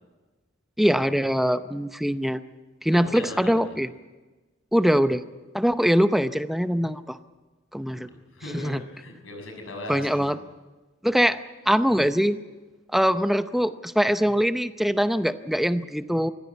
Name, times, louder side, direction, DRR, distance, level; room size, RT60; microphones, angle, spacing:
voice 1, 0.8-2.4 2.8-3.9 4.7-5.2 5.5-7.2 7.7-8.1 8.5-8.8 9.9-10.4 11.0-11.4 11.7-12.4 12.9-16.3, equal, ahead, 11 dB, 0.7 m, -22 dB
voice 2, 2.9-3.6 7.9-10.3, left 2 dB, 80° left, 3 dB, 6.6 m, -38 dB
24.0 x 16.0 x 8.3 m, 1.2 s
head